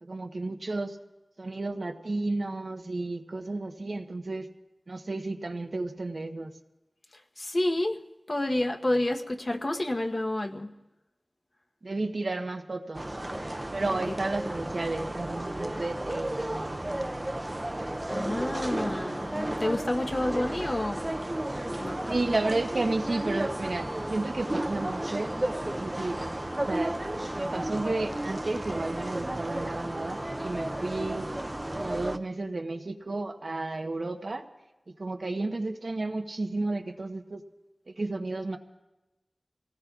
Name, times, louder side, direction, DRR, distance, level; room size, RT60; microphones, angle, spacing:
voice 1, 0.0-1.0 1.4-4.5 4.9-6.5 11.8-13.1 13.7-16.8 22.1-25.4 25.6-26.2 26.6-26.9 27.3-31.3 31.7-34.5 35.0-37.4 37.9-38.6, right 2 dB, 80° right, 5 dB, 0.9 m, -32 dB
voice 2, 7.1-8.0 8.3-10.7 13.8-13.9 18.1-21.1 21.6-22.1, left 1 dB, 55° left, 2 dB, 1.0 m, -29 dB
sound 1, 12.9-32.2, right 1 dB, 30° right, 0.5 m, -33 dB
27.0 x 18.0 x 2.4 m, 1.0 s
wide cardioid pair, 50°, 0 cm